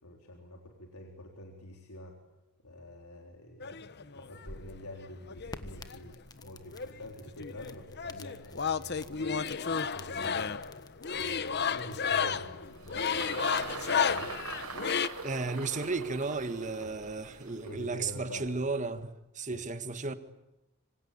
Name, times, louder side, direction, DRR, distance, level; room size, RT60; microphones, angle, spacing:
voice 1, 0.0-2.1 2.6-3.9 4.1-6.1 6.4-9.4 9.7-10.7 11.1-14.4 16.8-16.9 17.6-18.5 19.5-19.6, left 1 dB, 90° left, 3.9 m, -47 dB
sound 1, 3.6-4.5 5.3-6.5 6.7-15.1, left 6 dB, 50° left, 1.0 m, -32 dB
sound 2, 4.2-14.8, left 2 dB, 20° left, 1.4 m, -52 dB
Engine, 12.1-18.7, right 3 dB, 85° right, 6.2 m, -43 dB
voice 2, 15.2-20.1, right 3 dB, 35° right, 1.6 m, -34 dB
26.0 x 26.0 x 8.7 m
head